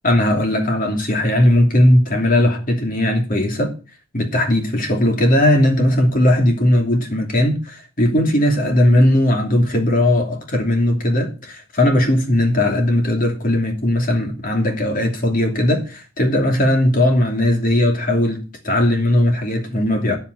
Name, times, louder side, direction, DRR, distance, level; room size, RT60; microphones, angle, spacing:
voice 1, 0.0-3.7 4.1-20.2, left 1 dB, 40° left, 2.8 m, -17 dB
9.3 x 8.2 x 6.3 m
head